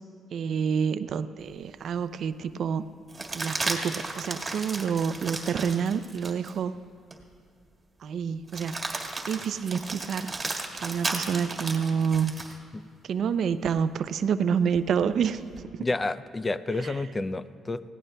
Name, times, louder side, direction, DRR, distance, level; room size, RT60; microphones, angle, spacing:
voice 1, 0.3-2.9 3.3-6.7 8.0-8.8 9.3-10.3 10.8-12.3 13.0-15.4 15.7-15.9 16.8-16.9, right 7 dB, 65° right, 12 dB, 0.4 m, -28 dB
sound 1, 1.5-1.6 3.1-6.6 7.1-7.2 8.5-12.6 14.8-15.6, right 3 dB, 25° right, 1.8 m, -34 dB
voice 2, 15.8-17.8, left 2 dB, 25° left, 14 dB, 0.4 m, -30 dB
20.0 x 17.0 x 2.3 m, 2.2 s
cardioid pair, 90°, 0 cm